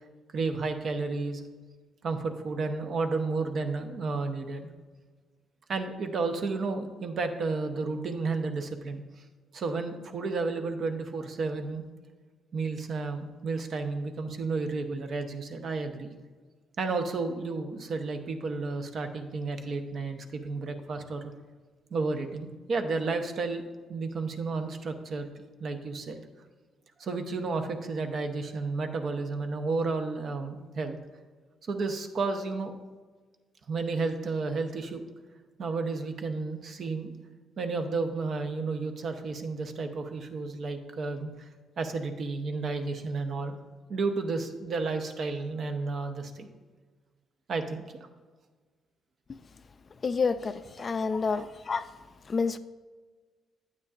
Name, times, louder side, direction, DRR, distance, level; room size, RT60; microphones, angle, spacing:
voice 1, 0.3-1.4 2.0-4.7 5.7-9.2 9.5-11.9 12.5-16.1 16.8-21.3 21.9-23.6 23.9-25.3 25.6-26.2 27.0-31.0 31.7-32.7 33.7-35.0 35.6-37.1 37.6-41.5 41.8-43.6 43.9-46.5 47.5-48.1 51.3-51.4, right 3 dB, 55° right, 6 dB, 0.8 m, -32 dB
voice 2, 50.0-51.8 52.3-52.6, left 4 dB, 40° left, 12 dB, 0.4 m, -28 dB
9.6 x 8.3 x 2.4 m, 1.4 s
cardioid pair, 90°, 0 cm